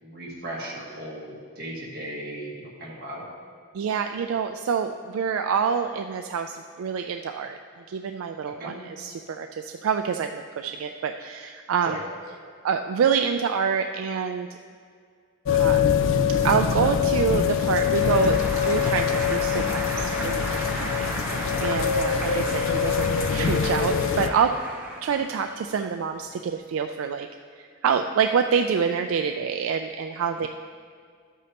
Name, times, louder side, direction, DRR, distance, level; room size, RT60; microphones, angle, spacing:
voice 1, 0.0-3.2 8.4-8.8 11.8-12.0 20.8-20.9, right 1 dB, 45° right, -4 dB, 1.8 m, -37 dB
voice 2, 3.7-7.6 7.9-12.0 12.6-14.5 15.5-15.8 16.4-20.5 20.8-24.5 25.0-27.3 27.8-30.5, right 6 dB, 75° right, 6 dB, 0.3 m, -26 dB
sound 1, 15.4-24.3, left 7 dB, 70° left, 0.4 m, -24 dB
Applause, 17.3-26.3, right 1 dB, 10° right, 0.8 m, -34 dB
11.5 x 8.3 x 2.9 m, 2.1 s
head